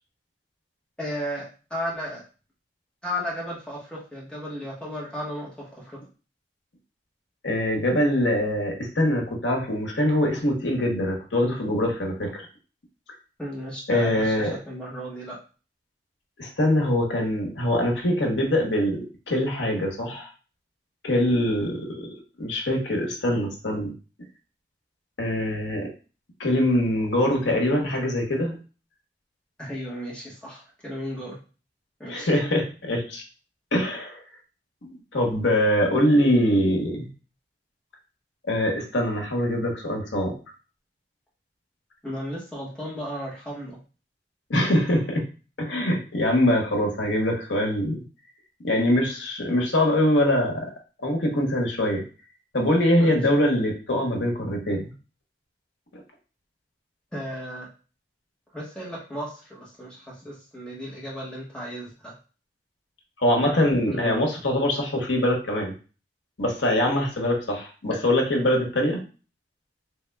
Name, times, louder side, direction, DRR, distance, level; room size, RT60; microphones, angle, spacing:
voice 1, 1.0-2.2 3.0-5.6 13.4-14.3 14.7-15.4 29.6-31.3 32.0-32.3 42.0-43.8 53.0-53.2 57.1-57.7 58.5-62.1 63.5-64.2, equal, 5° left, -6 dB, 1.2 m, -34 dB
voice 2, 7.4-12.4 13.9-14.6 16.4-20.3 21.0-22.1 22.4-23.9 25.2-25.9 26.4-28.6 32.1-33.2 33.7-34.2 34.8-37.1 38.5-40.3 44.5-45.2 45.6-48.0 48.6-50.7 51.0-52.0 52.5-54.9 63.2-65.7 66.4-69.0, left 1 dB, 75° left, 1 dB, 1.0 m, -23 dB
3.6 x 3.4 x 2.2 m, 0.36 s
head